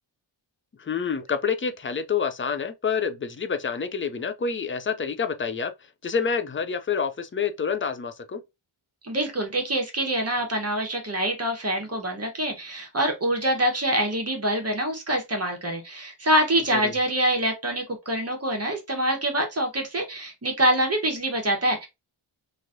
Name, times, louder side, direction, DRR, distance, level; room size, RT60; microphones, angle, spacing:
voice 1, 0.8-5.7 6.0-8.4 16.7-16.9, left 6 dB, 30° left, 0.3 m, -28 dB
voice 2, 9.0-21.9, right 1 dB, 30° right, 0.9 m, -25 dB
3.0 x 2.5 x 2.5 m
wide cardioid pair, 105°, 49 cm